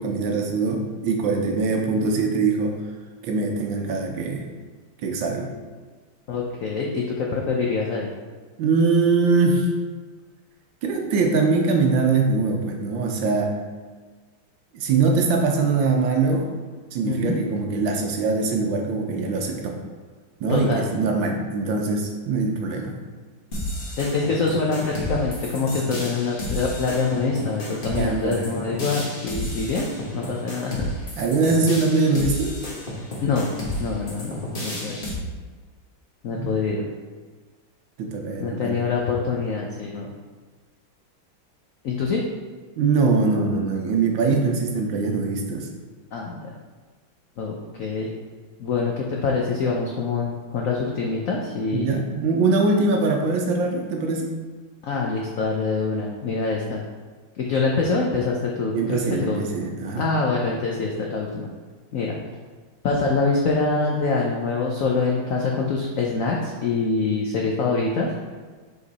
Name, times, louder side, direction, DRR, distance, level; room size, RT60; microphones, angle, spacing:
voice 1, 0.0-2.8 3.2-4.5 5.0-5.5 8.6-9.7 10.8-13.5 14.7-16.5 16.9-19.8 20.4-23.0 28.0-28.5 31.2-32.6 36.3-36.5 38.0-38.8 42.8-45.7 51.7-54.3 58.7-60.0, right 4 dB, 70° right, 2 dB, 1.5 m, -22 dB
voice 2, 6.3-8.1 17.1-17.4 20.5-20.9 24.0-29.9 30.1-30.9 33.2-33.5 33.8-34.3 34.6-35.0 36.2-36.9 38.4-40.1 41.8-42.2 46.1-46.5 47.4-48.1 48.6-52.0 54.8-56.8 57.3-59.5 60.0-61.5 61.9-62.2 62.8-68.1, left 4 dB, 80° left, -1 dB, 0.7 m, -25 dB
sound 1, 23.5-35.1, left 1 dB, 30° left, 1.2 m, -31 dB
5.1 x 4.8 x 4.0 m, 1.4 s
omnidirectional pair, 2.2 m